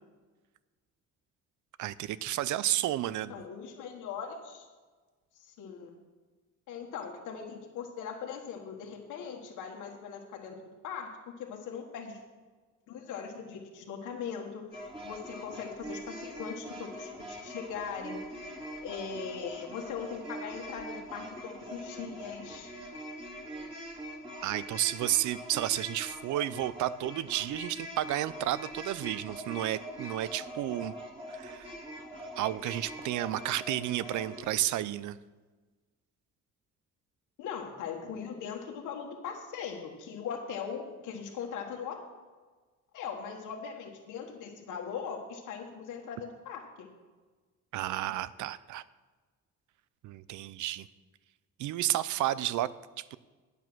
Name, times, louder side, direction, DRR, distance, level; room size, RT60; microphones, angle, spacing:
voice 1, 1.8-3.4 24.4-30.9 31.3-31.7 32.4-35.2 47.7-48.8 50.0-50.9 51.6-52.7 53.0-53.2, right 13 dB, 75° right, 17 dB, 0.5 m, -32 dB
voice 2, 3.3-4.7 5.3-6.0 6.7-10.5 10.8-11.1 11.4-12.2 12.9-18.2 18.8-22.7 37.4-42.0 42.9-46.9, left 6 dB, 90° left, 1 dB, 1.4 m, -40 dB
sound 1, 14.7-34.5, equal, 15° right, 2.1 m, -43 dB
9.4 x 8.2 x 6.1 m, 1.3 s
cardioid pair, 90°, 30 cm